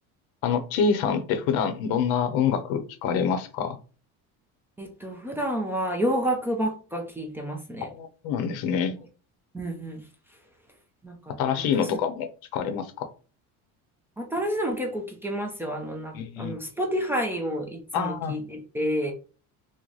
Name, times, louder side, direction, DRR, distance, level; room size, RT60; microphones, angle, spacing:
voice 1, 0.4-3.8 7.8-8.9 11.4-13.1 16.1-16.5 17.9-18.3, left 6 dB, 75° left, 9 dB, 0.7 m, -26 dB
voice 2, 4.8-7.9 9.5-10.0 11.0-11.9 14.2-19.1, equal, 5° right, 1 dB, 0.3 m, -30 dB
3.1 x 2.1 x 3.8 m, 0.37 s
cardioid pair, 145°, 36 cm